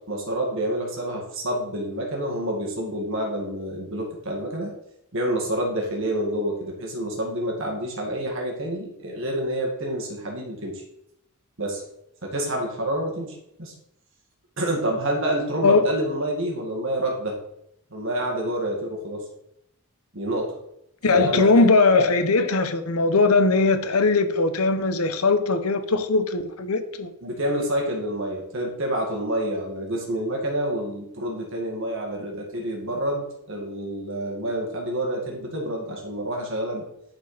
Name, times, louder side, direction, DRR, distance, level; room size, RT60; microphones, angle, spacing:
voice 1, 0.1-4.8 5.1-10.8 11.6-11.8 12.2-13.7 14.6-17.4 17.9-19.2 20.1-20.6 21.1-21.7 27.2-36.8, right 1 dB, 60° right, 2.1 m, -28 dB
voice 2, 15.6-15.9 21.0-27.1, left 3 dB, 85° left, 0.9 m, -20 dB
10.5 x 4.5 x 5.1 m
head